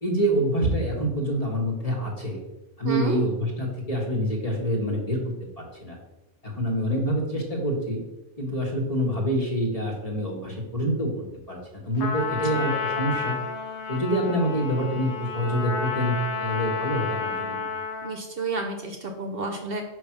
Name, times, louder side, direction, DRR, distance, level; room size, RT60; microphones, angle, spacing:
voice 1, 0.0-2.4 2.8-5.2 5.6-6.0 6.4-8.0 8.4-13.4 13.9-17.6, equal, 30° left, -1 dB, 1.5 m, -26 dB
voice 2, 2.8-3.2 12.3-12.6 18.0-19.8, right 3 dB, 55° right, 4 dB, 0.9 m, -31 dB
Trumpet, 12.0-18.2, left 5 dB, 65° left, 1.0 m, -31 dB
5.3 x 4.8 x 5.9 m, 1.0 s
omnidirectional pair, 1.2 m